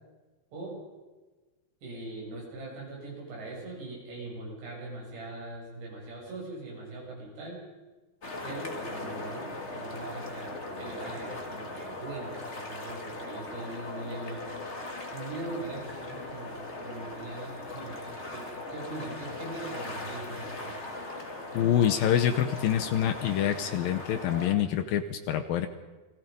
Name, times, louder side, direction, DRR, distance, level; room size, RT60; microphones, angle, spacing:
voice 1, 0.5-0.8 1.8-7.6 8.4-14.5 15.1-18.0 18.3-20.8, right 2 dB, 80° right, -2 dB, 9.3 m, -41 dB
sound 1, 8.2-24.5, left 2 dB, 20° left, 2.0 m, -39 dB
voice 2, 21.5-25.7, left 10 dB, 70° left, 9 dB, 2.4 m, -26 dB
29.5 x 21.5 x 5.3 m, 1.2 s
omnidirectional pair, 4.8 m